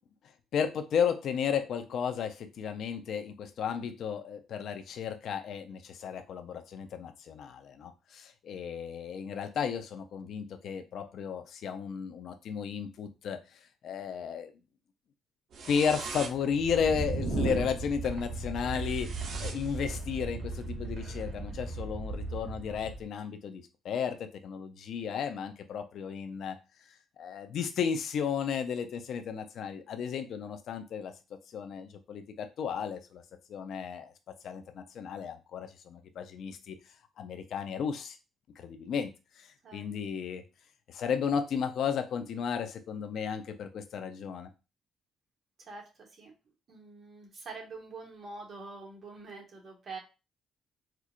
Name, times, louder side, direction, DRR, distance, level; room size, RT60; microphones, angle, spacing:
voice 1, 0.5-14.5 15.7-26.6 27.2-31.1 31.5-33.2 33.5-34.1 34.4-36.8 37.2-38.2 38.6-40.4 40.9-44.5, left 7 dB, 70° left, 8 dB, 0.5 m, -34 dB
sound 1, 15.5-23.1, right 3 dB, 65° right, 0.8 m, -36 dB
voice 2, 45.7-46.3 46.7-50.0, right 3 dB, 50° right, 0 dB, 1.5 m, -45 dB
4.4 x 2.4 x 2.5 m, 0.29 s
cardioid pair, 90°, 0 cm